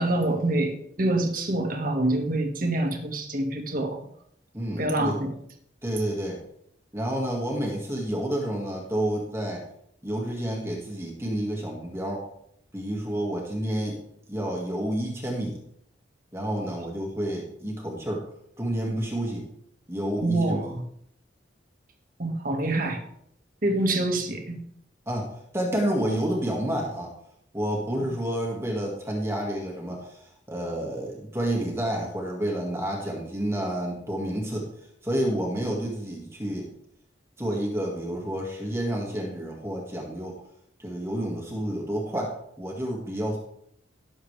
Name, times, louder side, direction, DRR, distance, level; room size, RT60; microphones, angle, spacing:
voice 1, 0.0-4.1 4.8-5.3 16.6-16.7 20.2-20.8 22.2-23.0 23.6-24.6, right 2 dB, 50° right, 3 dB, 1.7 m, -26 dB
voice 2, 4.5-5.2 5.8-6.4 6.9-9.6 10.0-12.2 12.7-14.0 14.3-15.6 16.3-18.2 18.6-19.5 19.9-20.6 25.1-27.1 27.5-34.7 35.0-36.7 37.4-40.3 40.8-43.4, right 1 dB, 15° right, -2 dB, 1.9 m, -29 dB
17.5 x 7.3 x 3.3 m, 0.71 s
head